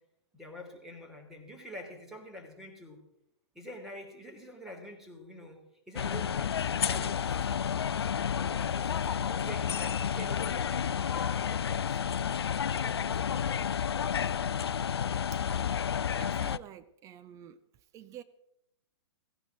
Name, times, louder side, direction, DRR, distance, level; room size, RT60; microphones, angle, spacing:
voice 1, 0.3-3.0 3.5-5.6 5.9-7.6 8.3-12.1 12.8-13.7, equal, 5° right, 3.3 m, -46 dB
sound 1, 6.0-16.6, left 8 dB, 65° left, 0.4 m, -31 dB
voice 2, 16.2-17.6 17.9-18.2, right 11 dB, 20° right, 0.6 m, -48 dB
17.0 x 15.5 x 4.0 m
figure-of-eight pair, 110°, 14 cm